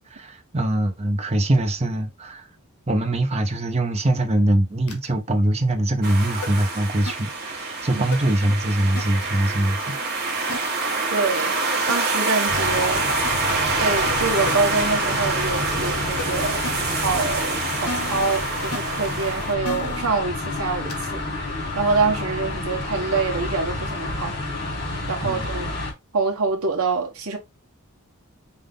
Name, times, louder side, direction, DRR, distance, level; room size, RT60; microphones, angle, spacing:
voice 1, 0.0-2.5 2.9-10.0 25.2-25.4, right 1 dB, 30° right, 0.7 m, -22 dB
sound 1, 4.9-5.1 6.4-6.5 7.1-7.2 8.1-8.2 9.0-9.1 10.5-10.6 11.9-12.0 13.2-13.3 14.1-14.2 14.5-14.6 16.2-16.3 16.6-16.7 17.9-18.3 18.7-18.8 19.6-20.1 20.9-21.1, left 1 dB, 85° left, 1.2 m, -30 dB
sound 2, 6.0-19.5, right 3 dB, 45° right, 1.4 m, -26 dB
voice 2, 11.1-11.6 11.9-13.0 13.8-21.2 21.7-24.4 25.1-25.7 26.1-27.4, right 4 dB, 75° right, 1.1 m, -25 dB
sound 3, 12.5-25.9, left 2 dB, 50° left, 2.4 m, -30 dB
5.4 x 2.6 x 3.4 m
head